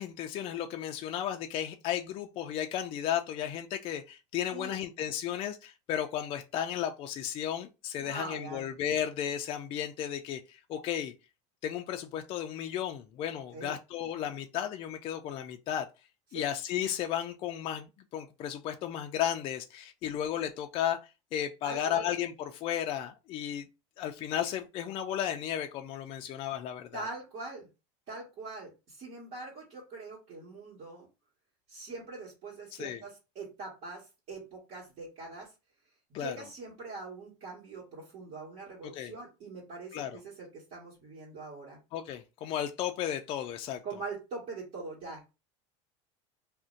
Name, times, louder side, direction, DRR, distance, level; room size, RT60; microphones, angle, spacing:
voice 1, 0.0-11.1 11.6-15.9 16.3-21.0 21.3-23.6 24.0-27.1 32.8-33.0 36.1-36.4 38.9-39.1 39.9-40.2 41.9-43.8, left 10 dB, 35° left, 0.3 m, -34 dB
voice 2, 8.0-8.7 13.5-13.7 16.3-16.5 21.6-22.1 26.9-27.7 28.1-31.1 31.7-35.5 36.2-41.8 43.8-45.4, right 3 dB, 45° right, 1.3 m, -43 dB
2.5 x 2.1 x 3.7 m
supercardioid pair, 135°, 15 cm